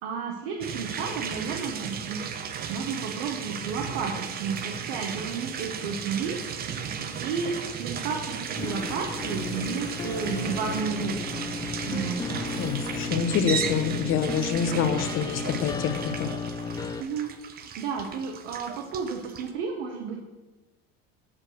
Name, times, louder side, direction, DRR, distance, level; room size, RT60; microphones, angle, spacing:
voice 1, 0.0-2.3 2.7-6.5 6.7-11.2 11.9-12.2 17.0-20.2, right 5 dB, 80° right, 1 dB, 1.2 m, -32 dB
sound 1, 0.6-19.5, right 7 dB, 30° right, 0.7 m, -35 dB
sound 2, 8.6-17.0, left 4 dB, 15° left, 0.3 m, -34 dB
voice 2, 12.6-16.3, left 7 dB, 45° left, 9 dB, 0.9 m, -26 dB
7.4 x 4.7 x 6.3 m, 1.2 s
supercardioid pair, 125°, 30 cm